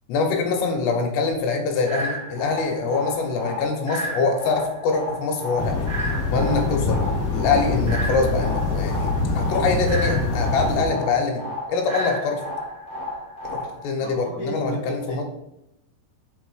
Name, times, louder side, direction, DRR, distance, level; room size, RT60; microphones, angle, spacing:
voice 1, 0.1-5.7 6.3-7.0 7.3-12.4 13.5-15.2, left 4 dB, 85° left, 2 dB, 3.2 m, -24 dB
sound 1, 1.9-13.9, equal, 45° right, 0.6 m, -33 dB
sound 2, 5.6-10.8, left 3 dB, 55° left, 1.8 m, -24 dB
voice 2, 14.0-15.2, right 2 dB, 80° right, -5 dB, 1.1 m, -34 dB
8.0 x 4.3 x 4.8 m, 0.83 s
omnidirectional pair, 4.9 m